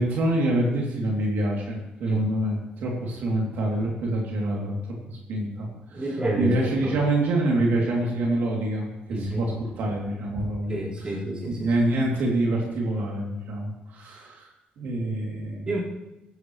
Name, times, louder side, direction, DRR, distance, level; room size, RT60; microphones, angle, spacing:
voice 1, 0.0-4.8 5.1-11.2 11.5-15.8, right 1 dB, 80° right, -2 dB, 2.8 m, -26 dB
voice 2, 5.9-6.5 6.8-6.9 9.1-9.4 10.7-11.7 15.7-15.8, right 1 dB, 30° right, -6 dB, 4.5 m, -29 dB
16.5 x 12.5 x 3.2 m, 0.97 s
cardioid pair, 125°, 3 cm